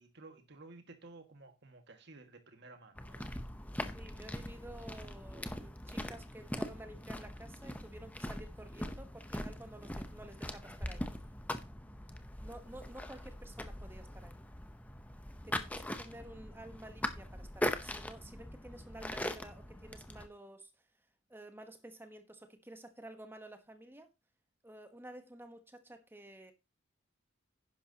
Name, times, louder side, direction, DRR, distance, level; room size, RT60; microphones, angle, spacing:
voice 1, 0.0-3.3, right 3 dB, 55° right, 1.8 m, -54 dB
sound 1, 3.0-20.3, left 1 dB, 5° left, 0.7 m, -41 dB
voice 2, 3.9-11.0 12.4-14.4 15.4-20.9 21.3-24.1 24.6-26.5, right 1 dB, 10° right, 1.1 m, -52 dB
11.0 x 10.0 x 2.9 m
head